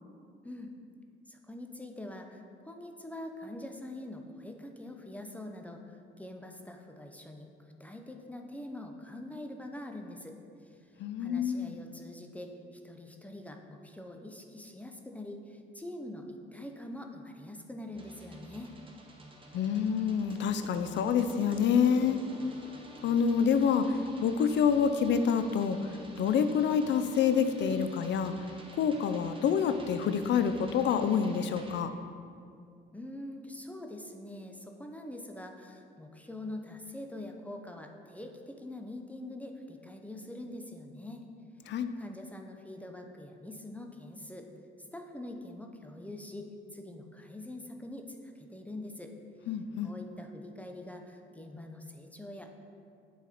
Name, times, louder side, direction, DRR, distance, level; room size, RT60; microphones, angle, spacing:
voice 1, 1.3-10.4 10.6-10.9 11.2-18.7 32.9-41.3 41.7-44.5 44.8-49.1 49.8-52.6, left 1 dB, 5° left, 3 dB, 0.6 m, -44 dB
voice 2, 11.0-11.7 19.5-22.2 23.0-25.8 26.2-28.3 28.7-31.9 41.7-41.9 49.5-49.9, left 7 dB, 65° left, 10 dB, 0.5 m, -27 dB
sound 1, 17.9-31.8, right 1 dB, 25° right, 0.9 m, -50 dB
7.1 x 4.0 x 4.2 m, 2.3 s
cardioid pair, 90°, 20 cm